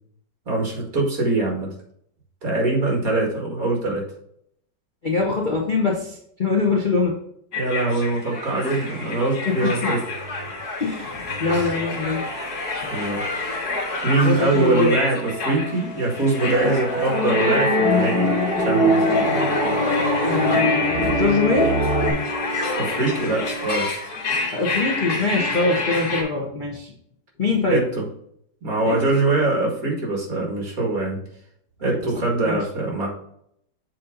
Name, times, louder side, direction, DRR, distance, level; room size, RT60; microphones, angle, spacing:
voice 1, 0.5-1.7 2.4-4.0 7.6-10.0 12.9-13.5 14.0-18.3 18.6-19.3 22.8-23.9 27.7-28.1 28.6-31.2 31.8-33.1, right 2 dB, 50° right, 0 dB, 2.5 m, -23 dB
voice 2, 5.0-7.2 9.5-9.9 10.8-12.2 14.2-14.9 20.2-21.7 24.5-26.9 27.4-27.8 28.9-29.0 31.8-32.0 32.4-32.6, left 3 dB, 35° left, -2 dB, 1.0 m, -23 dB
sound 1, 7.5-26.2, left 2 dB, 60° left, 2.2 m, -28 dB
sound 2, 16.4-22.1, equal, 30° right, 3.2 m, -22 dB
7.3 x 4.2 x 3.9 m, 0.70 s
omnidirectional pair, 2.0 m